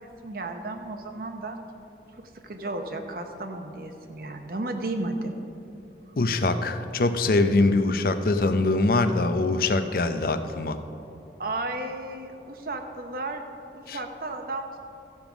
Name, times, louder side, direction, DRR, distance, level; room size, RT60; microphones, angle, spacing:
voice 1, 0.0-1.6 2.4-5.3 6.1-6.2 11.4-13.4 13.7-14.7, right 2 dB, 55° right, 5 dB, 0.8 m, -33 dB
voice 2, 6.2-10.8 13.9-14.0, left 2 dB, 55° left, 9 dB, 0.5 m, -23 dB
14.0 x 5.3 x 5.9 m, 2.9 s
head